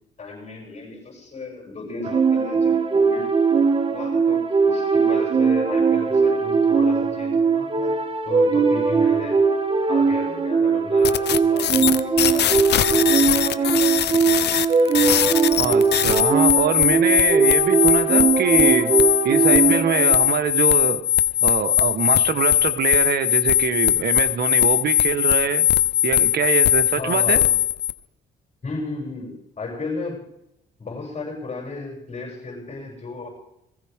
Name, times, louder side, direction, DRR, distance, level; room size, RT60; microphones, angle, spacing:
voice 1, 0.2-3.4 3.9-7.9 8.3-9.4 9.9-12.8 13.2-13.9 26.9-27.5 28.6-30.2 30.8-33.3, left 3 dB, 35° left, -2 dB, 7.5 m, -34 dB
sound 1, 2.0-20.1, right 5 dB, 30° right, 1.8 m, -20 dB
sound 2, 11.0-27.9, left 12 dB, 65° left, 0.8 m, -20 dB
voice 2, 15.6-18.9 19.2-21.0 21.4-25.7 26.0-27.4, right 8 dB, 55° right, 10 dB, 1.4 m, -24 dB
20.5 x 15.5 x 3.7 m, 0.81 s
cardioid pair, 85°, 19 cm